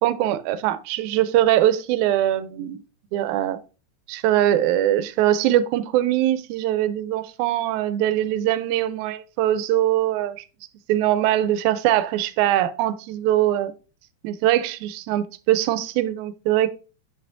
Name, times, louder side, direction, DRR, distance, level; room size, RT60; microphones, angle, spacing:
voice 1, 0.0-2.8 3.1-3.6 4.1-10.4 10.9-13.7 14.2-16.7, right 13 dB, 85° right, 2.0 m, -22 dB
7.6 x 6.6 x 2.6 m
omnidirectional pair, 3.4 m